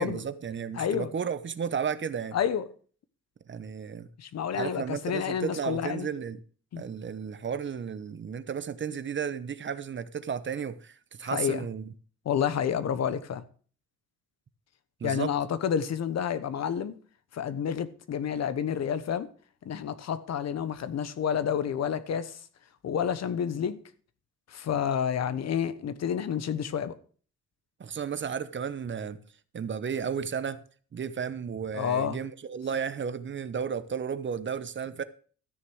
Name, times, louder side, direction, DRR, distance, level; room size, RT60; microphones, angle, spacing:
voice 1, 0.0-2.4 3.5-4.1 4.5-6.4 6.8-11.9 15.0-15.3 27.8-29.2 29.5-30.6 30.9-35.0, right 7 dB, 40° right, 0.9 m, -33 dB
voice 2, 0.8-1.1 2.3-2.7 4.2-6.1 6.7-6.8 11.3-11.6 12.2-13.4 15.0-17.0 17.3-19.3 19.6-22.4 22.8-23.8 24.5-26.9 31.7-32.2, left 8 dB, 60° left, 1.2 m, -29 dB
13.5 x 6.6 x 6.4 m
cardioid pair, 90°, 30 cm